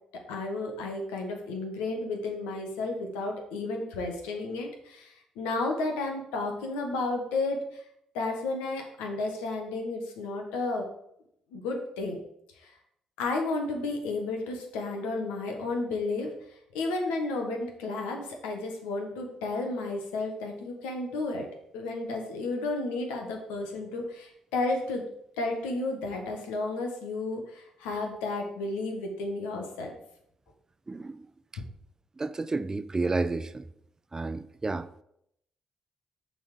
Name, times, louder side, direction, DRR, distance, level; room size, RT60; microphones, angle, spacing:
voice 1, 0.3-7.8 8.1-10.9 11.5-12.2 12.6-12.8 13.2-16.3 16.7-25.1 25.4-29.9, left 3 dB, 90° left, 1.4 m, -32 dB
voice 2, 30.9-31.2 32.2-33.7 34.1-35.0, right 3 dB, 30° right, 0.6 m, -31 dB
7.1 x 4.0 x 6.6 m
supercardioid pair, 55°, 2 cm